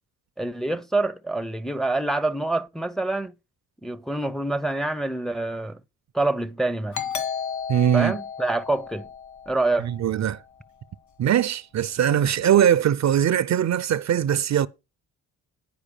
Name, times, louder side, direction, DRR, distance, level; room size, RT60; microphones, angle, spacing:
voice 1, 0.4-3.3 3.8-5.8 6.1-7.0 7.9-9.1 9.5-9.9, right 2 dB, ahead, 0.6 m, -26 dB
Doorbell, 6.9-10.3, left 7 dB, 50° left, 2.1 m, -33 dB
voice 2, 7.7-8.1 9.8-10.4 11.2-14.7, right 10 dB, 50° right, 0.6 m, -21 dB
10.0 x 4.7 x 6.8 m
supercardioid pair, 60°, 37 cm